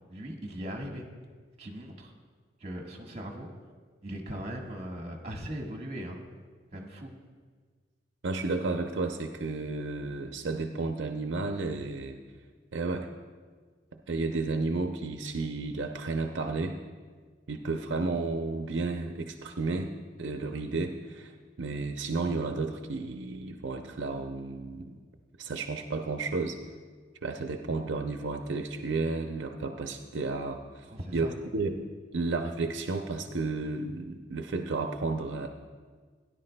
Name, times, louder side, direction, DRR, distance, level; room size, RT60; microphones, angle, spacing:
voice 1, 0.1-1.1 1.6-2.1 2.6-3.5 4.0-6.2 6.7-7.1 30.9-31.3, equal, 35° right, 1 dB, 1.4 m, -39 dB
voice 2, 8.2-12.2 12.7-13.1 14.1-16.8 17.5-19.9 20.2-21.3 21.6-25.0 25.4-26.6 27.2-30.9 31.1-31.3 31.5-31.8 32.1-35.5, right 3 dB, 80° right, 5 dB, 0.6 m, -32 dB
17.0 x 10.0 x 2.2 m, 1.5 s
head